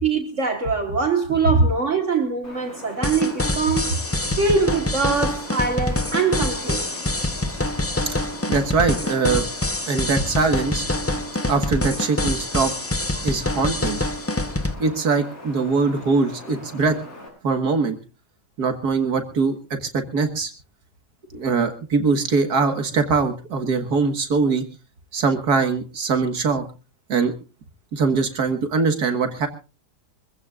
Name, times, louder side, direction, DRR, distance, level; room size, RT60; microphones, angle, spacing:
voice 1, 0.0-4.0 4.4-6.8 13.1-13.2, right 4 dB, 45° right, 1.7 m, -23 dB
Wind, 2.4-17.3, left 1 dB, 55° left, 7.7 m, -40 dB
sound 1, 3.0-14.7, left 2 dB, 20° left, 0.4 m, -25 dB
voice 2, 8.5-9.4 9.9-10.9 11.5-12.7 13.2-14.0 14.8-17.0 17.4-18.0 18.6-20.5 21.3-24.7 25.1-26.6 27.1-27.3 27.9-29.5, right 4 dB, 65° right, 2.0 m, -22 dB
24.5 x 16.0 x 2.4 m
omnidirectional pair, 1.8 m